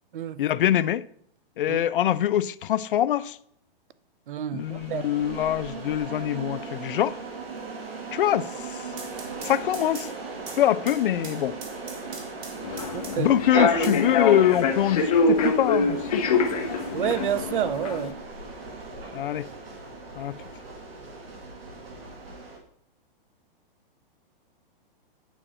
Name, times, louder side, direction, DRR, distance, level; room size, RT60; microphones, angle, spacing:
voice 1, 0.4-1.0 1.6-3.4 4.5-7.2 8.1-8.8 9.4-10.1 10.6-11.6 13.2-16.3 19.1-19.5 20.2-20.4, left 11 dB, 65° left, 0.4 m, -24 dB
voice 2, 4.3-5.1 12.9-14.0 16.9-18.1, right 9 dB, 60° right, 0.6 m, -29 dB
sound 1, 4.6-22.6, right 3 dB, 80° right, 2.3 m, -38 dB
sound 2, 8.8-13.4 13.8-14.8, right 4 dB, 25° right, 0.9 m, -43 dB
Human voice / Subway metro underground, 12.6-18.1, left 4 dB, 40° left, 0.9 m, -25 dB
9.0 x 4.9 x 4.3 m
hypercardioid pair, 175°, 29 cm